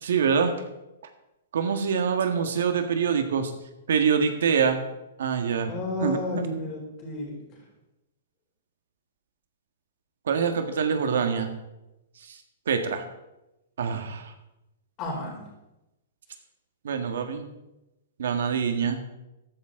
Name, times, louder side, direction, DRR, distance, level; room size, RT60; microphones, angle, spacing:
voice 1, 0.0-0.5 1.5-3.5 3.9-4.8 5.2-5.7 6.0-6.4 10.3-11.5 12.2-12.4 12.7-13.0 13.8-14.3 16.8-17.5 18.2-19.0, right 6 dB, 75° right, 7 dB, 1.7 m, -25 dB
voice 2, 5.7-7.6 15.0-15.5, left 2 dB, 25° left, 0 dB, 3.8 m, -32 dB
14.5 x 11.5 x 3.9 m, 0.95 s
hypercardioid pair, 165°, 0 cm